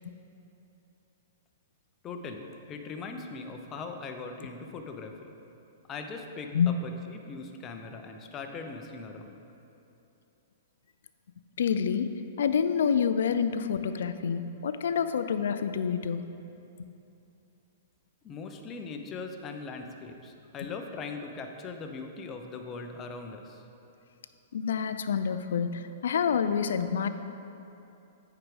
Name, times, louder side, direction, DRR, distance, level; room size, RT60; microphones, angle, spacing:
voice 1, 2.0-5.3 5.9-9.4 18.2-23.6, left 4 dB, 25° left, 4 dB, 0.7 m, -40 dB
voice 2, 11.6-12.1 12.4-16.3 24.5-27.1, left 7 dB, 75° left, 11 dB, 0.4 m, -27 dB
8.7 x 4.8 x 4.9 m, 2.9 s
hypercardioid pair, 125°, 0 cm